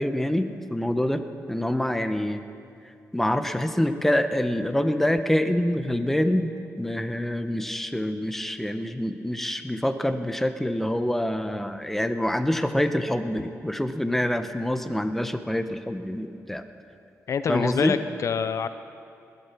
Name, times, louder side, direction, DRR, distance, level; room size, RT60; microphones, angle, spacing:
voice 1, 0.0-2.4 3.1-16.6 17.5-17.9, left 1 dB, 5° left, 8 dB, 0.9 m, -26 dB
voice 2, 17.3-18.7, left 6 dB, 60° left, 11 dB, 0.5 m, -26 dB
19.5 x 9.8 x 6.1 m, 2.5 s
cardioid pair, 75°, 6 cm